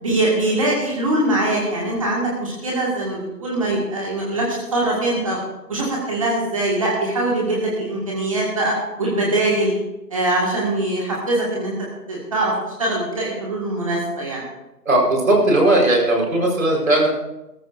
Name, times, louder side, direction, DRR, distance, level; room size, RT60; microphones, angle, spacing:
voice 1, 0.0-5.4 5.7-8.7 9.0-9.7 10.1-11.7 12.1-12.5 12.8-14.4, right 2 dB, 20° right, -3 dB, 1.8 m, -22 dB
voice 2, 14.8-17.1, right 1 dB, 55° right, -1 dB, 4.6 m, -17 dB
21.0 x 14.0 x 2.6 m, 0.94 s
figure-of-eight pair, 160°, 48 cm